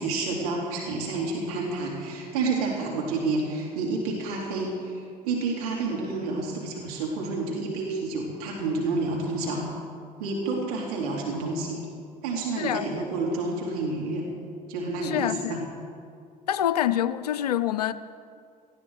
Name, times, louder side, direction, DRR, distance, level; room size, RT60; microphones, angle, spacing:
voice 1, 0.0-9.6 10.2-11.8 12.2-14.3 14.7-15.6, right 3 dB, 70° right, 2.8 m, -29 dB
voice 2, 12.6-12.9 15.0-15.7 16.5-17.9, left 11 dB, 80° left, 0.6 m, -26 dB
18.5 x 15.0 x 4.7 m
figure-of-eight pair, 55°, 20 cm